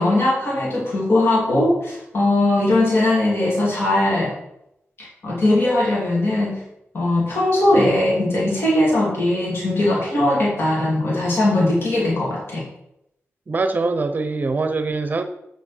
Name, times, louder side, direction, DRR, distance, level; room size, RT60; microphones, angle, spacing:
voice 1, 0.0-4.3 5.0-6.6 6.9-12.7, left 1 dB, 55° left, -5 dB, 2.9 m, -19 dB
voice 2, 13.5-15.2, right 3 dB, 40° right, 9 dB, 0.7 m, -23 dB
8.3 x 6.7 x 6.1 m, 0.82 s
wide cardioid pair, 120°, 5 cm